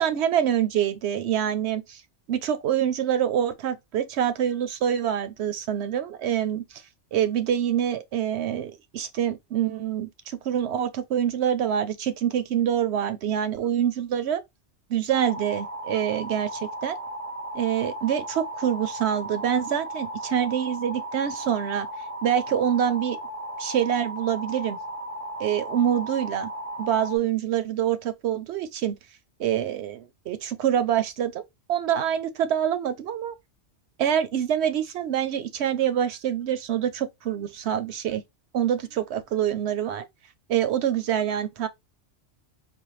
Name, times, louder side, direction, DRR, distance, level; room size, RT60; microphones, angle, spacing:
voice 1, 0.0-2.0 2.3-6.8 7.1-14.4 14.9-17.0 17.5-21.9 22.2-23.2 23.6-24.8 25.4-26.5 26.8-29.0 29.4-30.0 30.3-31.4 31.7-33.4 34.0-38.2 38.5-40.0 40.5-41.7, right 9 dB, 70° right, 0.8 m, -26 dB
sound 1, 15.1-27.2, right 1 dB, 40° right, 0.6 m, -36 dB
4.3 x 2.2 x 3.1 m
omnidirectional pair, 1.2 m